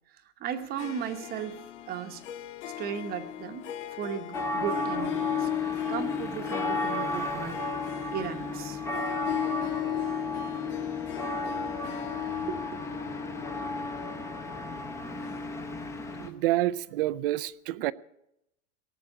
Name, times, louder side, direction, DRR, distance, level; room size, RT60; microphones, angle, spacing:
voice 1, 0.1-2.2 2.7-5.5 5.9-7.6 8.1-8.8 12.4-12.8, right 8 dB, 25° right, 1.0 m, -36 dB
Harp, 0.6-15.9, left 12 dB, 60° left, 1.4 m, -36 dB
sound 1, 4.3-16.3, left 1 dB, 5° left, 0.8 m, -34 dB
voice 2, 16.2-17.9, right 16 dB, 45° right, 0.5 m, -28 dB
18.0 x 7.8 x 9.7 m
supercardioid pair, 165°, 41 cm